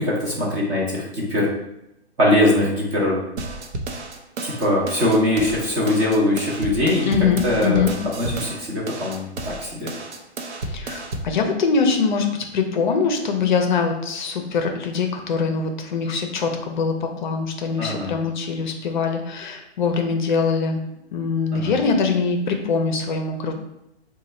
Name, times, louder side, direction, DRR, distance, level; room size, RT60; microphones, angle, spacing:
voice 1, 0.0-1.5 2.2-3.2 4.4-7.1 7.4-9.9 17.8-18.1 21.5-21.7, left 1 dB, 15° right, -5 dB, 0.5 m, -21 dB
sound 1, 3.4-11.4, right 2 dB, 90° right, 0.7 m, -32 dB
voice 2, 7.0-7.9 10.6-20.8 21.1-23.5, left 5 dB, 45° left, 4 dB, 0.5 m, -23 dB
3.0 x 2.2 x 4.2 m, 0.85 s
hypercardioid pair, 150°, 33 cm